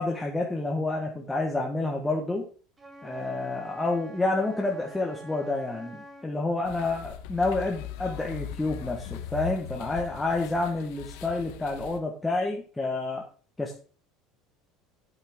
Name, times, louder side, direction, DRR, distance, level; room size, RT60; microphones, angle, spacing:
voice 1, 0.0-2.4 3.0-13.2 13.6-13.8, left 2 dB, 10° left, -1 dB, 1.2 m, -29 dB
Wind instrument woodwind instrument, 2.8-6.3, right 1 dB, 15° right, 1.4 m, -46 dB
sound 1, 6.6-12.0, left 9 dB, 75° left, 1.0 m, -39 dB
8.9 x 8.5 x 3.6 m, 0.39 s
cardioid pair, 155°, 0 cm